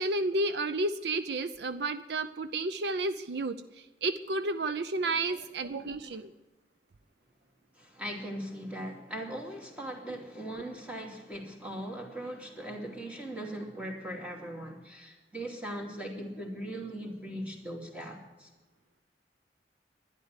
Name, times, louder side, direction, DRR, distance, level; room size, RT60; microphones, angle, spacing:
voice 1, 0.0-6.3, right 2 dB, 65° right, 12 dB, 0.6 m, -31 dB
voice 2, 5.0-6.3 7.8-18.5, right 1 dB, 5° right, 1 dB, 2.5 m, -40 dB
11.5 x 10.5 x 8.1 m, 1.1 s
head